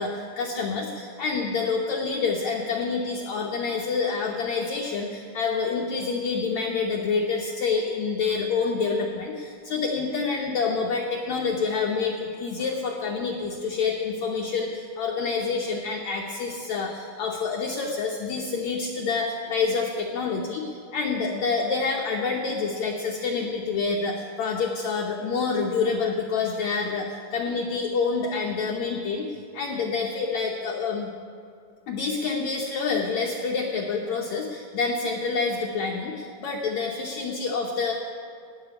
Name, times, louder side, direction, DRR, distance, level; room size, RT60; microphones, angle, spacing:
voice 1, 0.0-31.1 31.9-37.9, left 4 dB, 85° left, 0 dB, 1.6 m, -27 dB
16.0 x 5.9 x 9.7 m, 2.3 s
omnidirectional pair, 4.5 m